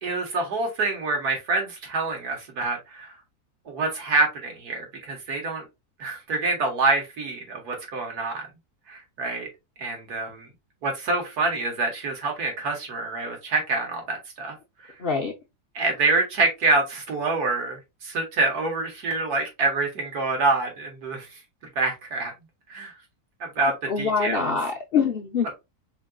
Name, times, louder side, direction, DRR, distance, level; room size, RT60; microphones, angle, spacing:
voice 1, 0.0-3.1 3.7-5.6 6.0-8.5 8.9-9.5 9.8-10.5 10.8-14.6 14.8-14.9 15.8-21.3 21.8-22.3 22.7-22.9 23.6-24.5, right 3 dB, 80° right, 1.9 m, -26 dB
voice 2, 15.0-15.3 23.9-25.5, left 5 dB, 55° left, 0.6 m, -24 dB
4.4 x 3.8 x 2.3 m
omnidirectional pair, 1.6 m